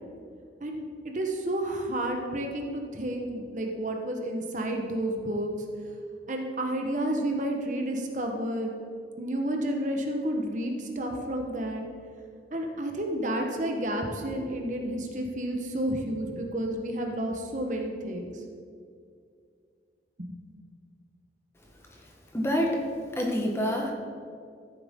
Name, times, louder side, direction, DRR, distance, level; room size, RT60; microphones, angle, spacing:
voice 1, 0.6-5.5 6.3-8.7 9.2-11.8 12.5-18.3 20.2-20.4, right 1 dB, 45° right, 2 dB, 1.1 m, -31 dB
voice 2, 22.3-22.8 23.2-23.9, equal, 15° left, 0 dB, 1.1 m, -26 dB
13.5 x 7.7 x 3.7 m, 2.3 s
head